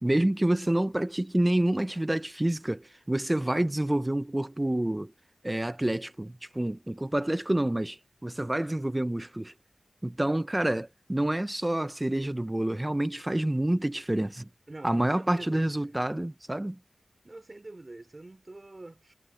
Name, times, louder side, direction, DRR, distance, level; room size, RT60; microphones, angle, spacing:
voice 1, 0.0-5.1 5.4-9.5 10.0-14.5 14.8-16.8, right 1 dB, 15° right, 0.8 m, -28 dB
voice 2, 14.7-15.9 17.2-19.1, right 2 dB, 30° right, 4.1 m, -46 dB
wide cardioid pair, 95°, 0 cm